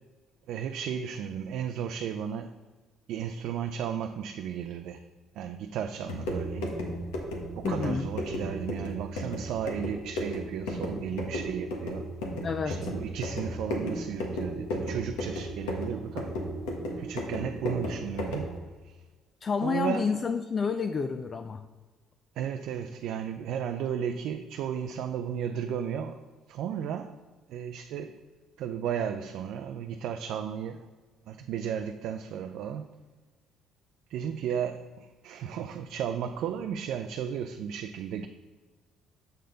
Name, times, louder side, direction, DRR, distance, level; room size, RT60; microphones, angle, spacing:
voice 1, 0.5-2.5 3.1-5.0 5.4-6.7 7.5-12.1 12.7-16.3 17.0-18.6 18.9-19.0 19.6-20.1 22.4-26.2 26.5-27.1 27.5-28.2 28.6-30.8 31.3-32.9 34.1-38.3, right 8 dB, 75° right, 6 dB, 0.4 m, -34 dB
sound 1, 5.9-18.6, equal, 90° left, 1.2 m, -34 dB
voice 2, 7.6-8.1 12.4-12.9 19.4-21.6, left 5 dB, 40° left, 8 dB, 0.4 m, -29 dB
6.6 x 6.6 x 3.8 m, 1.3 s
supercardioid pair, 75°, 0 cm